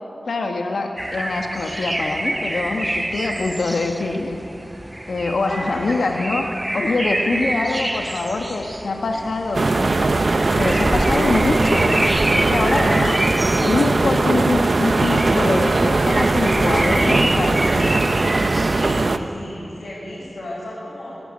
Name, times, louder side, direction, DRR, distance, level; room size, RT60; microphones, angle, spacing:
voice 1, 0.2-4.4 5.1-6.4 6.7-9.7 10.6-13.3 13.6-17.9, left 3 dB, 90° left, 3 dB, 1.5 m, -24 dB
sound 1, 1.0-19.1, right 1 dB, 15° right, 0.4 m, -28 dB
voice 2, 5.4-6.4 9.1-9.2 10.4-10.5 18.7-21.2, left 1 dB, 70° left, -7 dB, 6.6 m, -35 dB
sound 2, 9.5-19.2, right 3 dB, 50° right, 0.9 m, -19 dB
sound 3, 12.1-14.0 16.8-18.4, left 1 dB, 20° left, 1.6 m, -34 dB
25.0 x 13.0 x 9.8 m, 3.0 s
wide cardioid pair, 95°, 0 cm